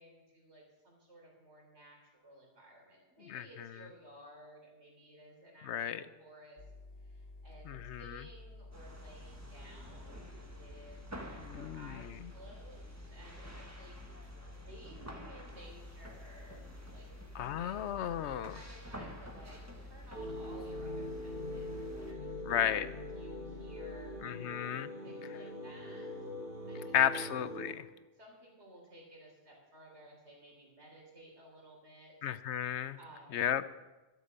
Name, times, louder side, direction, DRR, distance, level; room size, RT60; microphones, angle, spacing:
voice 1, 0.0-6.6 7.0-18.1 18.5-24.2 24.5-24.6 25.0-26.1 26.7-27.2 28.1-32.1 32.5-32.6 33.0-33.5, right 1 dB, 75° right, -1 dB, 3.9 m, -56 dB
voice 2, 3.3-3.7 5.6-6.0 7.7-8.2 11.4-12.0 17.3-18.6 22.5-22.9 24.2-24.9 26.9-27.8 32.2-33.0 33.3-33.6, left 10 dB, 80° left, 14 dB, 0.9 m, -33 dB
sound 1, 6.6-24.2, left 2 dB, 60° left, 1.1 m, -51 dB
sound 2, 8.7-22.1, right 1 dB, 15° right, 1.3 m, -51 dB
sound 3, 20.1-27.7, left 1 dB, 55° right, 3.8 m, -42 dB
12.5 x 8.1 x 6.8 m, 1.1 s
omnidirectional pair, 1.1 m